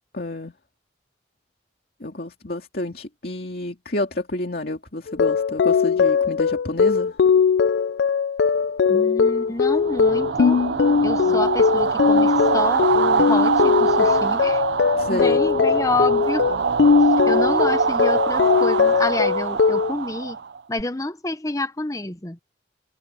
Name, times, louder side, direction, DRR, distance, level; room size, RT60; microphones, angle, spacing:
voice 1, 0.1-0.5 2.0-7.2 11.2-11.4 15.0-15.4, left 1 dB, 55° left, 2.5 m, -29 dB
sound 1, 5.1-19.9, left 6 dB, 70° left, 0.4 m, -19 dB
voice 2, 8.9-10.7 11.0-14.6 15.1-16.5 17.3-20.4 20.7-22.4, left 2 dB, 20° left, 0.9 m, -28 dB
sound 2, 9.7-20.8, right 5 dB, 70° right, 0.5 m, -24 dB
head